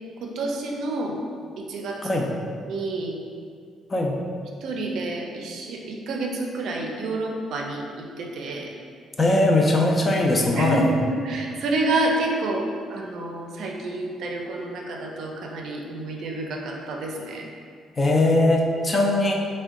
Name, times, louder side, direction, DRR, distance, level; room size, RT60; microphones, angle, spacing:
voice 1, 0.2-1.2 1.6-2.2 2.7-3.1 4.6-8.7 10.5-17.5, right 2 dB, 65° right, 1 dB, 0.4 m, -29 dB
voice 2, 9.2-10.9 18.0-19.3, left 2 dB, 25° left, 0 dB, 0.4 m, -20 dB
3.6 x 2.1 x 3.5 m, 2.2 s
cardioid pair, 140°, 0 cm